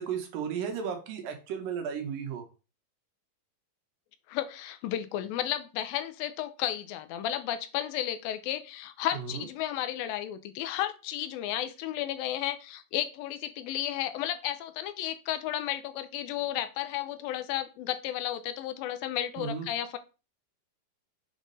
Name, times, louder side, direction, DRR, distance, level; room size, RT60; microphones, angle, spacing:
voice 1, 0.0-2.5 9.1-9.5 19.4-19.7, right 7 dB, 75° right, 4 dB, 2.7 m, -34 dB
voice 2, 4.3-20.0, left 12 dB, 85° left, 10 dB, 2.4 m, -33 dB
7.3 x 3.6 x 4.0 m, 0.32 s
omnidirectional pair, 4.2 m